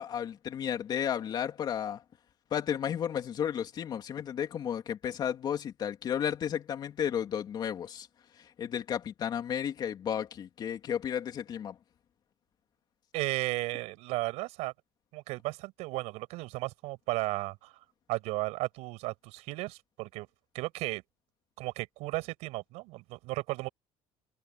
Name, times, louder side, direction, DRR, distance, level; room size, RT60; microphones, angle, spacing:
voice 1, 0.0-2.0 2.5-8.1 8.4-11.8, left 9 dB, 40° left, 3.2 m, -33 dB
voice 2, 13.1-14.7 15.1-17.7 18.1-20.3 20.5-21.0 21.6-23.7, right 22 dB, 80° right, 6.0 m, -34 dB
cardioid pair, 150°, 11 cm